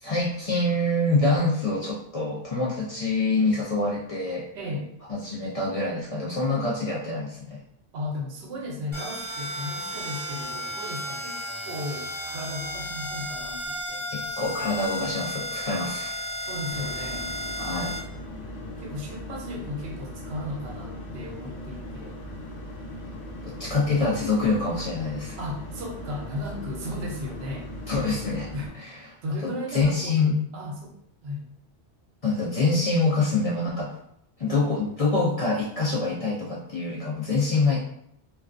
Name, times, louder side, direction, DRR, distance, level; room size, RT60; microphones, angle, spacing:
voice 1, 0.0-4.4 5.1-7.6 14.4-16.1 17.6-17.9 23.4-25.4 27.9-28.5 28.8-29.0 29.7-30.4 32.2-33.9 34.4-37.8, left 3 dB, 55° left, -5 dB, 0.4 m, -25 dB
voice 2, 4.5-4.9 7.9-14.1 16.4-17.4 18.8-22.2 25.4-27.7 28.5-28.7 29.2-30.9 31.2-31.4, left 1 dB, 75° right, 0 dB, 0.8 m, -35 dB
sound 1, 8.9-18.0, left 1 dB, 30° right, 0.6 m, -34 dB
sound 2, 16.7-28.7, left 1 dB, 80° left, 1.0 m, -39 dB
2.4 x 2.2 x 2.4 m, 0.72 s
omnidirectional pair, 1.1 m